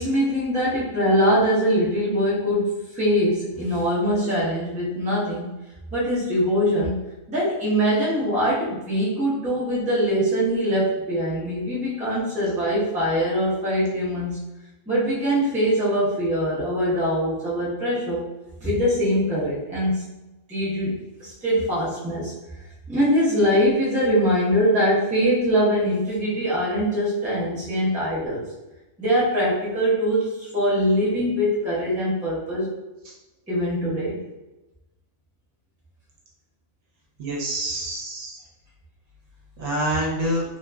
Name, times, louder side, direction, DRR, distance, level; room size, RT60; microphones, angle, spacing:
voice 1, 0.0-5.5 5.9-7.0 7.3-14.4 14.9-18.2 18.6-20.1 20.5-22.3 22.9-28.4 29.0-32.7 33.5-34.2, equal, 5° right, -8 dB, 0.6 m, -23 dB
voice 2, 37.2-38.4 39.6-40.4, right 1 dB, 70° right, -4 dB, 1.1 m, -26 dB
2.9 x 2.4 x 2.2 m, 1.0 s
omnidirectional pair, 1.5 m